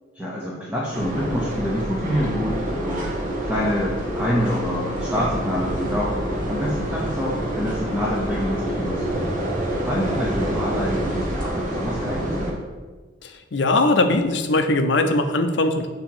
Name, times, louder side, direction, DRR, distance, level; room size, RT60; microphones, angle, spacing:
voice 1, 0.1-3.1 3.4-6.1 6.5-9.3 9.8-12.5, equal, 5° right, -6 dB, 0.7 m, -26 dB
sound 1, 0.9-12.5, right 1 dB, 45° right, 1.0 m, -27 dB
voice 2, 13.2-15.9, left 2 dB, 65° left, 6 dB, 0.6 m, -20 dB
7.0 x 2.9 x 5.5 m, 1.3 s
head